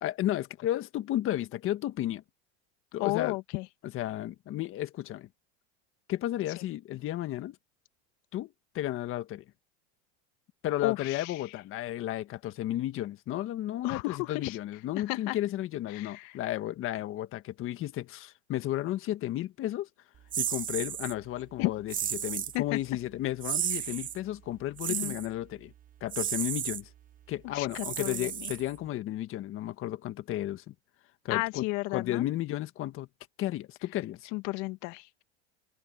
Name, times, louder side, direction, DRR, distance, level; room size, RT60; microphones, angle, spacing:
voice 1, 0.0-2.2 2.9-3.4 3.9-5.3 6.1-7.6 8.3-9.4 10.6-19.9 20.4-25.7 26.0-26.9 27.3-30.7 31.2-31.6 31.9-33.1 33.4-34.3, left 13 dB, 40° left, 1.6 m, -33 dB
voice 2, 3.0-3.7 10.8-11.3 13.8-14.6 15.0-15.4 15.9-16.4 21.6-21.7 22.5-22.8 24.9-25.1 27.5-28.5 31.3-32.3 34.3-35.2, left 22 dB, 55° left, 1.6 m, -33 dB
sound 1, 20.3-21.1 21.9-22.6 23.4-24.2 24.8-25.3 26.1-26.8 27.7-28.9, right 10 dB, 25° right, 0.8 m, -33 dB
supercardioid pair, 130°, 35 cm